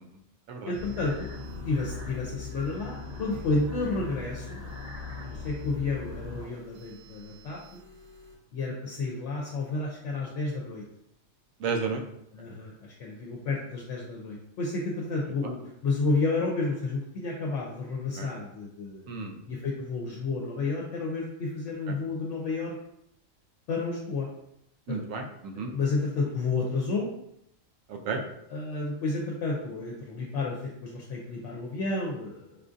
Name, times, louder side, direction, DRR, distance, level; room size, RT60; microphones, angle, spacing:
voice 1, 0.7-1.3 1.6-4.6 5.3-7.8 8.5-10.8 12.3-19.1 19.5-22.7 23.7-24.3 24.9-25.0 25.5-27.1 28.5-32.6, left 3 dB, 70° left, -2 dB, 0.9 m, -31 dB
sound 1, 0.7-8.3, left 4 dB, 45° right, 0.6 m, -40 dB
voice 2, 11.6-12.0 18.2-18.3 19.1-19.3 24.9-25.7 27.9-28.2, right 4 dB, 85° right, 3 dB, 1.0 m, -32 dB
4.9 x 2.4 x 2.5 m, 0.78 s
omnidirectional pair, 1.3 m